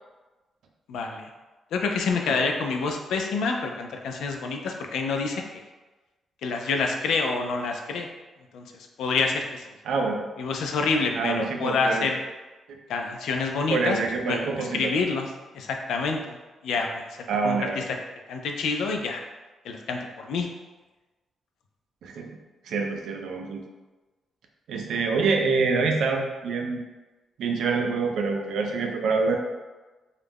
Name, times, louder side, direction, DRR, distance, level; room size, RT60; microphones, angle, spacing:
voice 1, 0.9-1.3 1.7-5.6 6.4-8.1 8.5-9.6 10.4-12.2 12.9-14.0 14.3-15.3 15.5-16.4 16.6-17.8 18.3-19.2 19.6-20.5, left 4 dB, 90° left, 3 dB, 0.3 m, -27 dB
voice 2, 9.9-10.3 11.2-12.1 12.7-12.8 13.7-14.9 17.3-17.8 22.0-22.4 22.7-23.6 24.7-26.8 27.4-29.4, right 4 dB, 80° right, 2 dB, 0.4 m, -26 dB
2.3 x 2.1 x 3.3 m, 1.2 s
cardioid pair, 130°, 0 cm